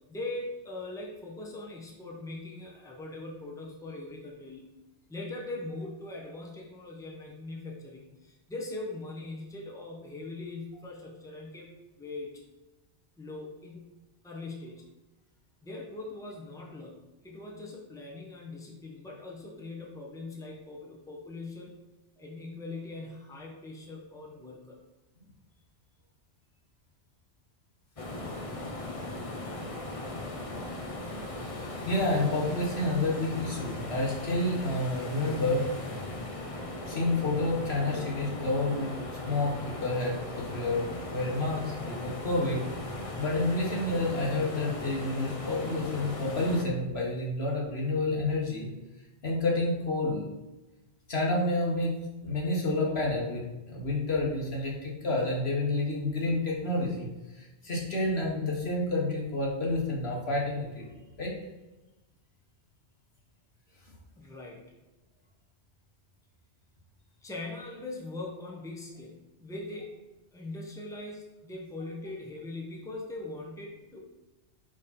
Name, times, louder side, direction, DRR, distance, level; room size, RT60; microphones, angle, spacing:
voice 1, 0.1-4.7 5.1-12.3 13.2-13.9 14.2-14.8 15.6-21.8 22.2-24.8 29.9-30.3 64.2-64.6 67.2-70.0 70.3-74.0, left 2 dB, 5° left, -2 dB, 1.0 m, -41 dB
sound 1, 28.0-46.6, left 2 dB, 35° left, 0.8 m, -38 dB
voice 2, 31.6-35.7 36.8-38.9 39.3-42.6 43.2-48.7 49.2-50.2 51.1-51.9 52.2-57.1 57.4-60.8 61.2-61.3, left 2 dB, 70° left, -3 dB, 1.7 m, -29 dB
5.2 x 5.1 x 4.3 m, 1.1 s
omnidirectional pair, 1.1 m